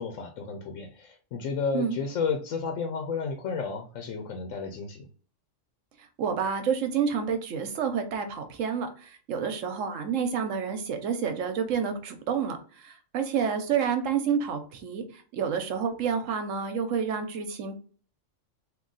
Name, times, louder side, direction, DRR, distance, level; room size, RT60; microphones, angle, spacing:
voice 1, 0.0-5.1, left 5 dB, 80° left, 4 dB, 1.0 m, -32 dB
voice 2, 6.2-17.7, right 7 dB, 80° right, 7 dB, 1.1 m, -29 dB
3.7 x 2.7 x 3.9 m, 0.42 s
omnidirectional pair, 1.3 m